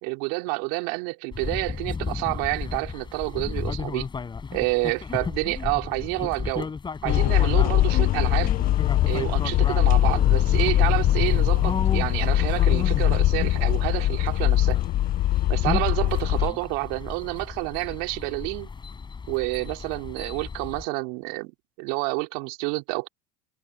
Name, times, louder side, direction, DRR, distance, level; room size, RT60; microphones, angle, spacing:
voice 1, 0.0-4.1 4.5-6.7 7.0-8.5 9.0-14.8 15.5-18.7 19.3-21.5 21.8-23.1, right 30 dB, 70° right, 4.2 m, -29 dB
sound 1, 1.3-20.8, left 5 dB, 25° left, 7.0 m, -34 dB
sound 2, 7.1-16.5, left 14 dB, 50° left, 1.2 m, -22 dB
hypercardioid pair, 85°, 19 cm